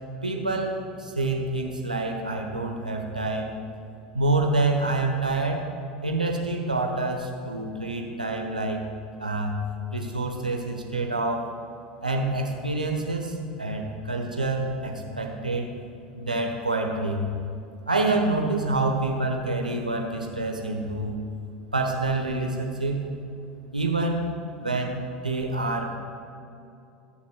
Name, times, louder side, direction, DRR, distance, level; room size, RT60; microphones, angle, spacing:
voice 1, 0.2-3.6 4.1-5.6 6.0-8.8 9.2-9.5 9.9-11.4 12.0-15.7 16.2-17.2 17.9-21.1 21.7-23.0 23.7-24.2 24.6-26.0, right 2 dB, 90° right, 2 dB, 1.0 m, -27 dB
19.5 x 7.3 x 2.3 m, 2.6 s
figure-of-eight pair, 75°, 4 cm